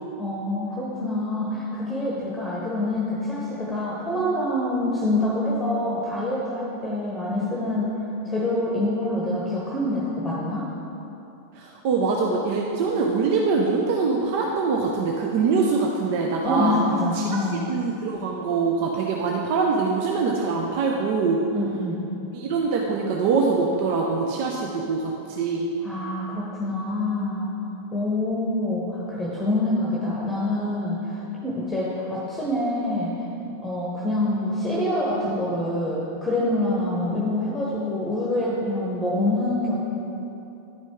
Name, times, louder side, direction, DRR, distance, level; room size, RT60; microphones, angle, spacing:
voice 1, 0.2-8.0 8.2-10.7 16.4-17.6 21.5-22.0 25.8-27.5 27.9-33.1 33.6-39.8, left 1 dB, 10° left, -5 dB, 1.1 m, -26 dB
voice 2, 11.6-16.8 17.1-17.2 17.7-21.4 22.3-25.7, right 4 dB, 50° right, 0 dB, 0.6 m, -23 dB
10.5 x 5.2 x 3.6 m, 2.9 s
figure-of-eight pair, 90°, 0 cm